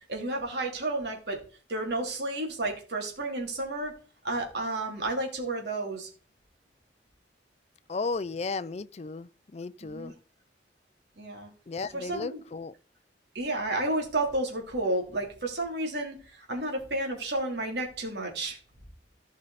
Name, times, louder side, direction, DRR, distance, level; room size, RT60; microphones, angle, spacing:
voice 1, 0.1-1.4 1.7-3.9 4.2-6.1 9.8-10.1 11.2-11.5 11.9-12.4 13.3-18.6, right 2 dB, 65° right, 3.2 m, -31 dB
voice 2, 7.9-10.1 11.7-12.7, left 4 dB, 35° left, 0.4 m, -34 dB
15.0 x 5.5 x 4.1 m
head